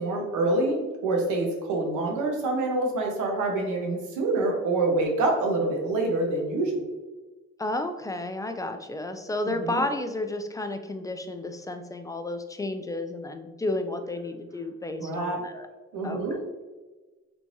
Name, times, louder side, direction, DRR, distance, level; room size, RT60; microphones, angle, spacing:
voice 1, 0.0-6.7 9.4-9.8 15.0-15.6 15.9-16.4, right 2 dB, 80° right, 0 dB, 1.0 m, -26 dB
voice 2, 7.6-15.7 16.0-16.2, left 2 dB, 10° left, 7 dB, 0.3 m, -32 dB
3.5 x 3.1 x 2.6 m, 1.2 s
cardioid pair, 90°, 30 cm